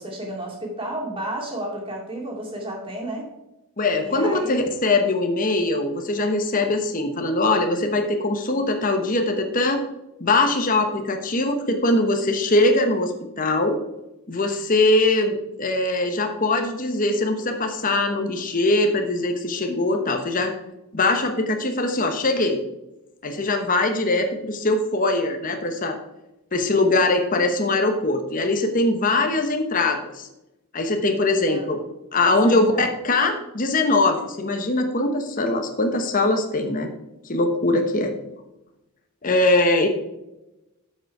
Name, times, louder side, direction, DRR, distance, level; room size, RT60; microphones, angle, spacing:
voice 1, 0.0-3.3 4.0-4.7 31.5-31.7 32.2-32.8, right 1 dB, 25° right, -1 dB, 2.5 m, -32 dB
voice 2, 3.8-9.8 10.2-13.8 14.3-20.5 20.9-22.6 23.2-26.0 26.5-30.3 30.7-31.8 32.1-36.9 37.2-38.1 39.2-39.9, left 2 dB, 35° left, 5 dB, 1.0 m, -22 dB
7.5 x 6.8 x 4.7 m, 0.96 s
head